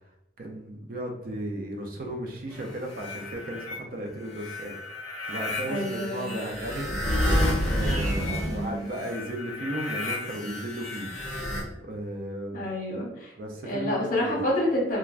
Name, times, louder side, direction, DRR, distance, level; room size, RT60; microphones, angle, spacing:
voice 1, 0.4-11.1 11.8-12.6 13.4-14.5, right 1 dB, 50° right, 2 dB, 0.5 m, -35 dB
sound 1, 2.5-3.8 4.3-11.6, left 1 dB, 5° left, 1.0 m, -30 dB
voice 2, 5.6-6.4 8.5-8.9 12.5-13.3 13.6-15.0, left 1 dB, 50° left, -3 dB, 0.9 m, -28 dB
3.2 x 2.2 x 2.4 m, 0.84 s
head